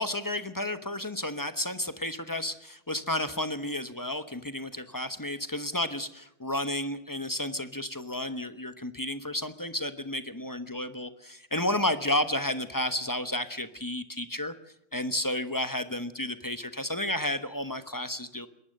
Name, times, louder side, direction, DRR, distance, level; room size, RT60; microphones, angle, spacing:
voice 1, 0.0-14.5 14.9-18.5, left 1 dB, 15° left, 11 dB, 0.6 m, -32 dB
22.0 x 19.5 x 6.6 m, 0.79 s
omnidirectional pair, 2.2 m